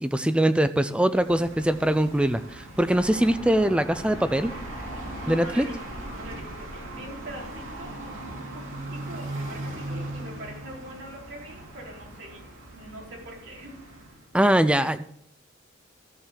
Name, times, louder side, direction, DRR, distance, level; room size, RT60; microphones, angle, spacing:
voice 1, 0.0-4.5 5.3-5.6 14.3-15.0, right 1 dB, 5° right, 11 dB, 0.4 m, -22 dB
sound 1, 1.0-14.3, right 1 dB, 80° right, 3.1 m, -39 dB
sound 2, 2.9-8.2, equal, 25° left, 4.5 m, -43 dB
voice 2, 5.2-8.3 8.5-12.5 12.7-13.7, right 1 dB, 60° right, -3 dB, 4.2 m, -43 dB
13.5 x 6.5 x 7.3 m, 0.70 s
head